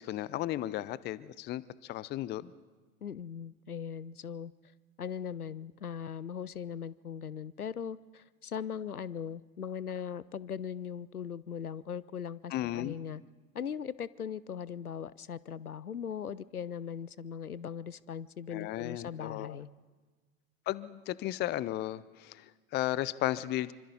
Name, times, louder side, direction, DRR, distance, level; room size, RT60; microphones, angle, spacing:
voice 1, 0.0-2.5 12.5-13.0 18.5-19.6 20.7-23.7, left 14 dB, 25° left, 19 dB, 0.5 m, -35 dB
voice 2, 3.0-4.5 5.0-13.2 13.5-19.7, left 8 dB, 90° left, 20 dB, 0.5 m, -39 dB
26.0 x 25.5 x 4.0 m, 1.3 s
figure-of-eight pair, 75°, 43 cm